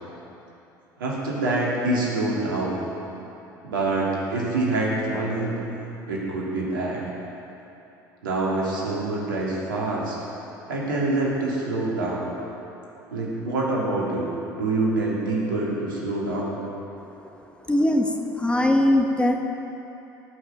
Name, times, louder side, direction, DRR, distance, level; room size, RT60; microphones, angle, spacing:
voice 1, 1.0-2.8 3.6-5.6 6.1-7.0 8.2-10.2 10.7-12.3 13.1-16.6, right 2 dB, 80° right, -5 dB, 2.9 m, -26 dB
voice 2, 17.7-19.3, left 1 dB, 10° left, 3 dB, 1.3 m, -21 dB
18.5 x 6.4 x 6.7 m, 3.0 s
figure-of-eight pair, 65°, 11 cm